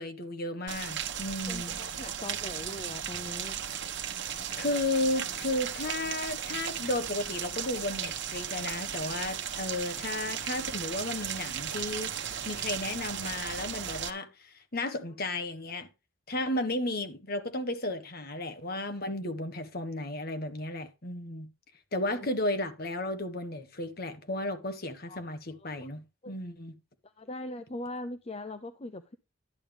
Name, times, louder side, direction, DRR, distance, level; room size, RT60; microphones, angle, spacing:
voice 1, 0.0-1.7 4.5-15.9 16.3-21.5 21.9-26.7, left 1 dB, 45° left, 1.5 m, -34 dB
Rain, 0.7-14.1, right 8 dB, 60° right, 1.1 m, -36 dB
voice 2, 1.5-3.6 22.0-22.3 25.1-25.2 25.6-25.7 26.2-26.4 27.2-29.1, left 1 dB, 30° left, 0.6 m, -41 dB
11.5 x 8.6 x 3.5 m
head